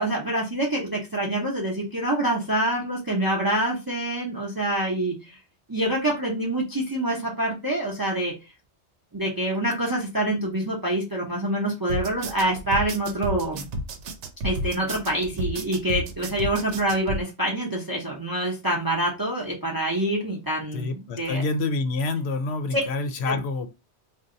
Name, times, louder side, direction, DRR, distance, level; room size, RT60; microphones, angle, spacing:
voice 1, 0.0-5.4 5.7-8.3 9.1-13.7 14.4-21.4 22.7-22.8 23.2-23.4, right 1 dB, 25° right, 0.6 m, -26 dB
sound 1, 11.9-17.2, right 1 dB, 85° right, 0.9 m, -31 dB
voice 2, 20.7-23.7, left 3 dB, 70° left, 0.8 m, -27 dB
2.6 x 2.2 x 3.7 m
omnidirectional pair, 1.2 m